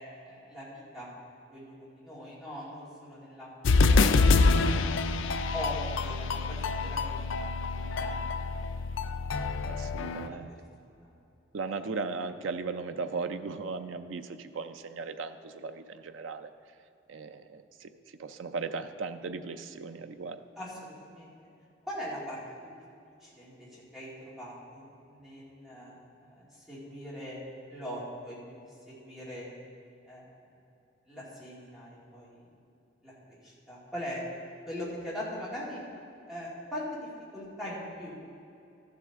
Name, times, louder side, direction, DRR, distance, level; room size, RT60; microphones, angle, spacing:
voice 1, 0.3-1.1 1.5-4.3 4.8-5.1 5.5-7.4 7.8-8.6 10.2-10.4 11.0-11.1 20.6-21.3 21.8-22.4 23.2-27.4 27.7-28.6 28.9-29.5 30.1-30.2 31.1-32.4 33.0-34.2 34.7-35.8 36.3-37.1 37.3-38.2, equal, ahead, -8 dB, 2.5 m, -41 dB
sound 1, 3.6-10.3, left 3 dB, 80° left, 0.4 m, -26 dB
voice 2, 9.6-10.5 11.5-16.5 17.1-17.9 18.2-20.4, right 4 dB, 80° right, 9 dB, 0.5 m, -37 dB
13.5 x 7.7 x 3.6 m, 2.6 s
head